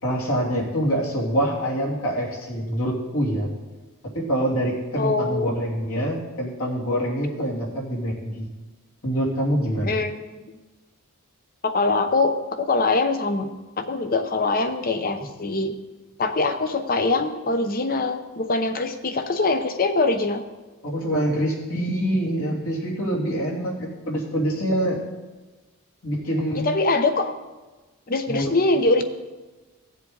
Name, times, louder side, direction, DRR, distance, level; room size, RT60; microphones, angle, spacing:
voice 1, 0.0-3.5 4.1-8.5 9.0-10.0 20.8-25.0 26.0-26.7 28.3-28.5, equal, 65° left, -4 dB, 2.9 m, -25 dB
voice 2, 5.0-5.6 9.8-10.6 11.6-15.7 16.2-20.4 26.6-27.4 28.1-29.0, left 3 dB, 40° left, 8 dB, 0.8 m, -23 dB
16.5 x 7.5 x 4.0 m, 1.2 s
head